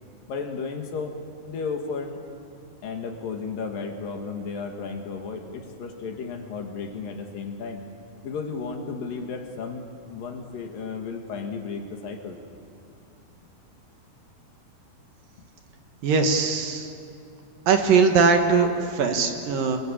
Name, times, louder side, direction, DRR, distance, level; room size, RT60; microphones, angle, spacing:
voice 1, 0.3-1.2 1.5-2.2 2.8-7.8 8.2-12.4, left 5 dB, 65° left, 3 dB, 3.4 m, -33 dB
voice 2, 16.0-16.9 17.7-18.7 18.9-19.8, right 5 dB, 65° right, 5 dB, 3.1 m, -20 dB
26.5 x 23.0 x 8.7 m, 2.5 s
omnidirectional pair, 4.5 m